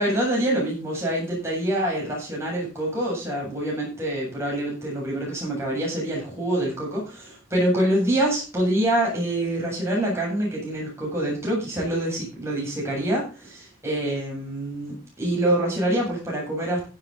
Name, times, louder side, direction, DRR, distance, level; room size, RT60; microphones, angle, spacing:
voice 1, 0.0-16.9, right 1 dB, 15° right, -4 dB, 7.8 m, -26 dB
16.0 x 8.3 x 4.3 m, 0.33 s
head